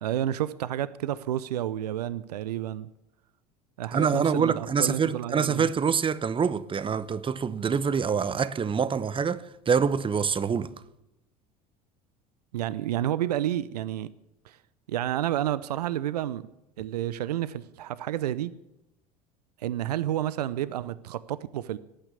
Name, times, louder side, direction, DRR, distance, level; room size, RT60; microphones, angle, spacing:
voice 1, 0.0-2.9 3.8-5.7 12.5-14.1 14.4-14.6 14.9-16.5 16.8-18.5 19.6-21.8, right 12 dB, 80° right, 0.6 m, -30 dB
voice 2, 3.9-10.7, right 6 dB, 25° right, 0.9 m, -25 dB
18.5 x 9.0 x 8.4 m
hypercardioid pair, 70°, 20 cm